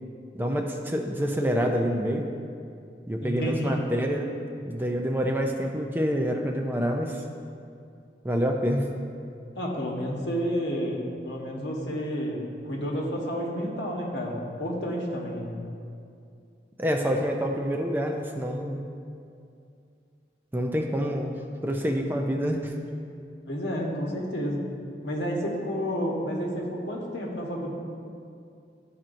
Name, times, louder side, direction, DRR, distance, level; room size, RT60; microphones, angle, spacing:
voice 1, 0.3-2.3 3.1-4.3 4.6-7.2 8.2-8.9 16.8-18.8 20.5-21.3 21.6-22.7, equal, 10° right, 2 dB, 0.4 m, -27 dB
voice 2, 3.2-3.8 9.5-15.5 23.5-24.6 25.0-27.7, equal, 80° left, -2 dB, 1.2 m, -30 dB
11.5 x 4.3 x 2.6 m, 2.4 s
head